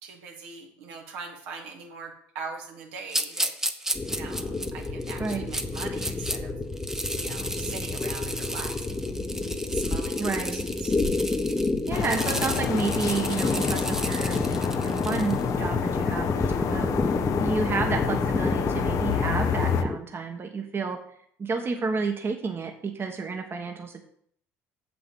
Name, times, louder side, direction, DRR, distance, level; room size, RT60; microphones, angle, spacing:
voice 1, 0.0-3.5 4.1-6.5 7.1-9.2 9.7-11.0, right 5 dB, 75° right, 1 dB, 2.0 m, -41 dB
sound 1, 3.1-6.4 6.7-15.4, right 1 dB, 5° right, 1.0 m, -34 dB
sound 2, 3.9-20.0, left 3 dB, 20° left, 1.1 m, -29 dB
voice 2, 10.2-10.6 11.9-17.0 17.4-21.0 21.4-24.0, right 4 dB, 35° right, 4 dB, 1.4 m, -31 dB
sound 3, 11.9-19.8, left 8 dB, 55° left, 0.8 m, -29 dB
7.2 x 5.9 x 7.3 m, 0.65 s
hypercardioid pair, 70°, 7 cm